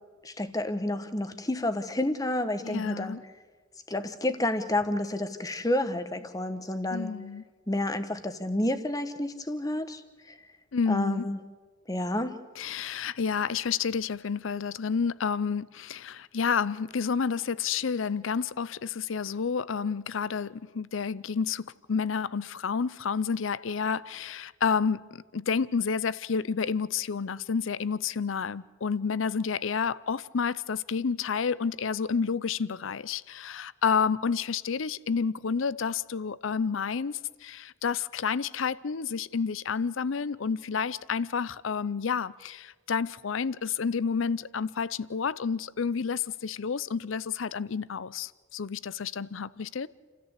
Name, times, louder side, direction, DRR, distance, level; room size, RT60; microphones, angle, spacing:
voice 1, 0.2-3.2 3.9-7.1 7.7-10.0 10.3-10.4 10.9-11.4 11.9-12.4, left 1 dB, 20° left, 1.1 m, -30 dB
voice 2, 2.6-3.2 6.9-7.4 10.7-11.3 12.6-49.9, left 6 dB, 75° left, 0.6 m, -30 dB
29.5 x 13.5 x 8.2 m
head